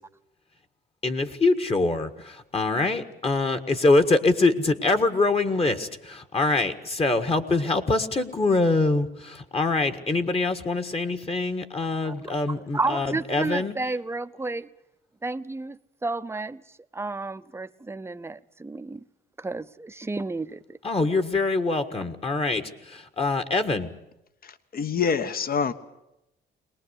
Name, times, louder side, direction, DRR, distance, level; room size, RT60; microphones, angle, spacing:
voice 1, 1.0-13.7 20.8-23.9, left 3 dB, 30° left, 1.7 m, -24 dB
voice 2, 12.5-14.7 15.2-16.6 16.9-19.0 19.4-20.8, right 3 dB, 10° right, 0.7 m, -31 dB
voice 3, 24.7-25.7, left 6 dB, 50° left, 1.3 m, -25 dB
22.5 x 19.5 x 8.2 m
cardioid pair, 90°, 20 cm